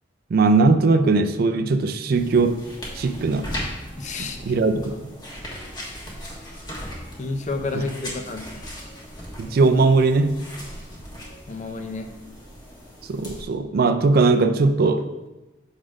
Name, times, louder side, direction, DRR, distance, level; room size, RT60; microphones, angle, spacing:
voice 1, 0.3-2.6 3.0-3.5 4.2-5.1 7.7-7.8 9.4-10.4 13.1-15.1, right 3 dB, 50° right, 10 dB, 0.4 m, -19 dB
sound 1, 2.1-13.4, equal, 20° left, 1.3 m, -38 dB
voice 2, 4.0-4.6 7.2-8.4 11.5-12.1, left 3 dB, 35° left, 6 dB, 0.6 m, -30 dB
6.3 x 4.0 x 4.7 m, 1.1 s
head